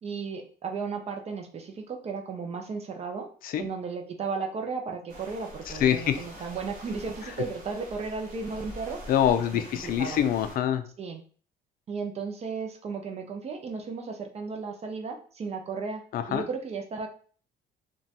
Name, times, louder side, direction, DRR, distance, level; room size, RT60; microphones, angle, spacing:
voice 1, 0.0-3.3 3.6-9.0 9.5-10.2 11.0-11.2 11.9-16.0 16.3-17.1, right 5 dB, 40° right, 4 dB, 0.5 m, -35 dB
sound 1, 5.1-10.6, equal, 55° right, 1.1 m, -45 dB
voice 2, 5.8-6.2 9.1-10.8 16.1-16.4, left 10 dB, 55° left, 9 dB, 0.4 m, -25 dB
2.9 x 2.2 x 2.8 m, 0.43 s
cardioid pair, 110°, 17 cm